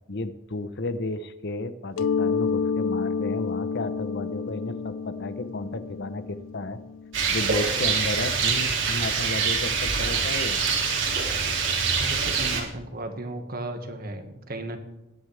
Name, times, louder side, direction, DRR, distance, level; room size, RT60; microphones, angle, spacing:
voice 1, 0.1-6.8 7.3-10.6, left 2 dB, 55° left, 12 dB, 0.9 m, -33 dB
Mallet percussion, 2.0-7.5, left 5 dB, 75° left, 0.3 m, -29 dB
Rain, 7.1-12.6, right 5 dB, 65° right, 2.6 m, -25 dB
voice 2, 12.0-14.8, right 1 dB, 45° right, 6 dB, 1.7 m, -35 dB
21.5 x 9.7 x 3.4 m, 0.95 s
head